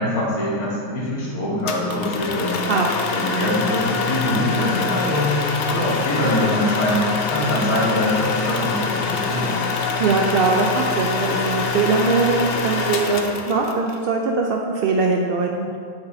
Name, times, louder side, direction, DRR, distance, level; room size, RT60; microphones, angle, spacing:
voice 1, 0.0-2.5 3.1-5.4 5.7-7.0 7.3-9.6, left 1 dB, 85° left, -7 dB, 2.2 m, -23 dB
sound 1, 1.7-14.0, left 5 dB, 60° left, 0.6 m, -25 dB
voice 2, 2.7-3.0 10.0-15.7, right 4 dB, 85° right, 1 dB, 0.5 m, -21 dB
8.0 x 6.9 x 2.7 m, 2.2 s
omnidirectional pair, 1.6 m